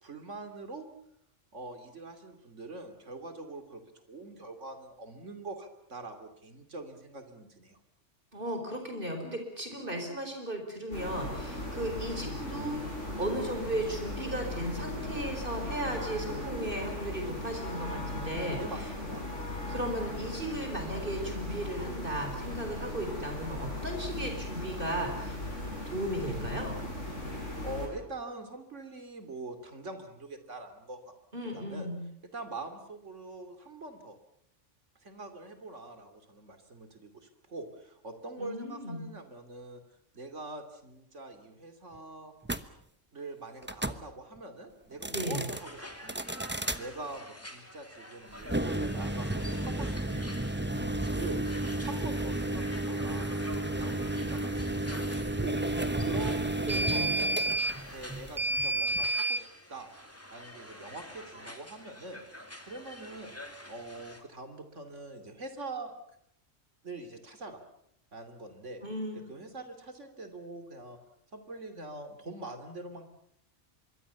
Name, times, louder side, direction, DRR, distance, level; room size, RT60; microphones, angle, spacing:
voice 1, 0.0-0.9 1.5-7.8 18.6-19.3 27.4-31.1 31.5-31.9 32.2-34.2 35.0-39.8 40.1-42.3 43.1-46.3 46.8-51.4 51.8-53.3 53.8-55.6 56.0-57.3 57.9-59.9 60.3-62.2 62.6-63.3 63.7-65.9 66.8-67.6 68.1-68.8 69.1-71.0 71.3-73.1, right 2 dB, 70° right, 7 dB, 3.2 m, -44 dB
voice 2, 8.3-18.6 19.7-25.4 25.9-26.8 31.3-32.0 38.4-39.0 45.1-45.4 56.7-57.1 68.8-69.2, right 1 dB, 45° right, 4 dB, 4.5 m, -35 dB
sound 1, 10.9-27.9, left 1 dB, 70° left, 8.3 m, -38 dB
sound 2, 42.4-42.6 43.6-44.0 44.9-45.6 46.1-46.8 48.4-59.4, right 1 dB, 10° right, 0.9 m, -31 dB
sound 3, 45.5-64.2, left 1 dB, 10° left, 2.6 m, -48 dB
25.5 x 22.5 x 7.0 m, 0.72 s
omnidirectional pair, 1.3 m